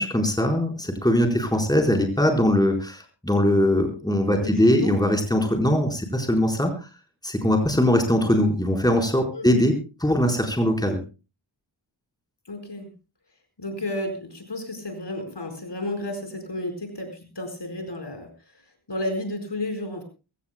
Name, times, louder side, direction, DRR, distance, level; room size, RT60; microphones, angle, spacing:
voice 1, 0.0-6.7 7.2-11.0, left 1 dB, 10° left, 3 dB, 4.4 m, -21 dB
voice 2, 4.3-4.9 9.3-9.5 12.5-12.9 13.6-18.3 18.9-20.0, left 1 dB, 60° left, 5 dB, 4.8 m, -32 dB
23.0 x 16.5 x 2.2 m, 0.32 s
wide cardioid pair, 55°, 47 cm